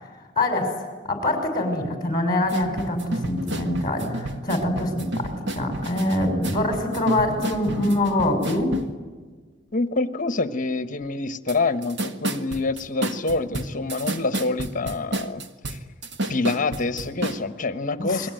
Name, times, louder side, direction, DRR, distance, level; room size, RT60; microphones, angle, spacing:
voice 1, 0.4-0.7 1.1-8.7 18.0-18.3, left 1 dB, 20° left, 4 dB, 6.0 m, -24 dB
sound 1, 2.4-9.0 11.5-11.6 11.8-17.4, right 1 dB, 60° right, 1.8 m, -31 dB
voice 2, 9.7-15.4 15.7-15.8 16.3-18.3, left 3 dB, 40° left, 11 dB, 1.3 m, -26 dB
29.0 x 22.0 x 9.2 m, 1.4 s
head